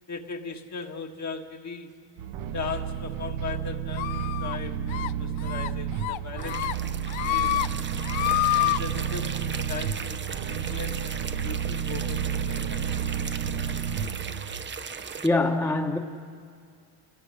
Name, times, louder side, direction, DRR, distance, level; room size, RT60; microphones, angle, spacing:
voice 1, 0.1-1.9 2.5-6.7 7.2-7.6 8.5-12.9, left 5 dB, 35° left, 1.6 m, -38 dB
sound 1, 2.2-14.6, right 8 dB, 75° right, 1.3 m, -31 dB
sound 2, 4.0-4.6 4.9-5.1 5.4-5.7 6.0-6.7 7.1-7.7 8.0-8.8, left 16 dB, 70° left, 0.7 m, -27 dB
sound 3, 6.4-15.3, right 6 dB, 20° right, 0.8 m, -38 dB
voice 2, 15.2-16.0, left 2 dB, 5° left, 1.3 m, -23 dB
30.0 x 20.0 x 6.4 m
cardioid pair, 110°, 49 cm